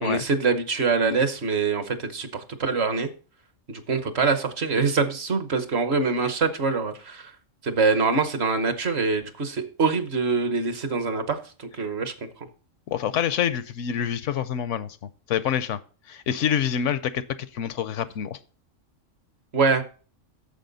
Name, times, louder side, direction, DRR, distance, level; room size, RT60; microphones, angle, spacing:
voice 1, 0.0-3.1 3.7-7.3 7.6-12.1 19.5-19.8, right 4 dB, 55° right, 1.2 m, -24 dB
voice 2, 12.9-15.0 15.3-15.8 16.1-18.4, left 9 dB, 70° left, 0.9 m, -26 dB
9.1 x 7.1 x 4.0 m
omnidirectional pair, 1.4 m